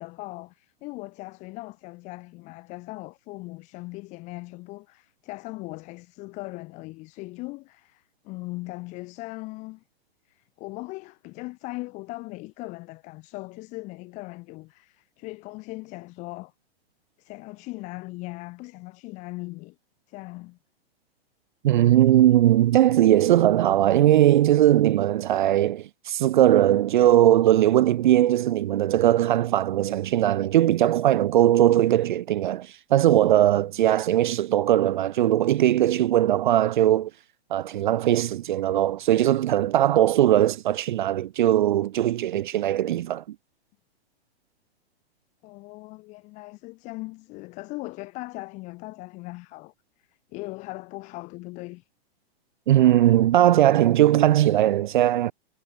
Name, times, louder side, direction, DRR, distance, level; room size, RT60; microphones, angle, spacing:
voice 1, 0.0-9.8 10.3-16.5 17.2-19.7 20.1-20.6 45.4-49.7 50.1-51.9, left 22 dB, 20° left, 1.6 m, -39 dB
voice 2, 21.6-37.1 37.5-43.2 52.7-55.3, right 12 dB, 50° right, 0.5 m, -20 dB
hypercardioid pair, 165°, 32 cm